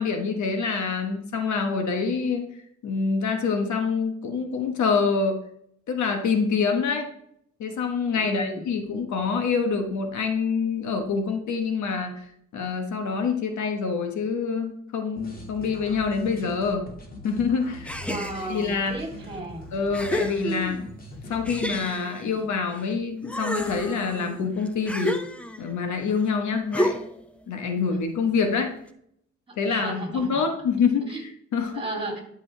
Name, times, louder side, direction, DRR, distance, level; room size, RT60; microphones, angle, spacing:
voice 1, 0.0-2.5 2.8-5.4 5.9-7.1 7.6-12.1 12.5-16.9 17.2-17.9 18.5-19.0 19.7-20.8 21.3-25.2 25.6-27.0 27.5-28.7 29.6-31.8, left 5 dB, 70° left, 5 dB, 1.3 m, -26 dB
voice 2, 8.1-8.6 18.0-19.7 29.5-30.4 31.1-31.2 31.7-32.2, right 2 dB, 20° right, 1 dB, 3.0 m, -34 dB
sound 1, 15.2-21.8, left 1 dB, 30° left, 2.1 m, -42 dB
sound 2, 17.8-18.7 19.3-19.4 19.9-20.9 21.5-22.9 23.2-25.8 26.7-27.3, left 1 dB, 5° left, 0.8 m, -30 dB
12.0 x 5.5 x 3.3 m, 0.68 s
cardioid pair, 90°, 30 cm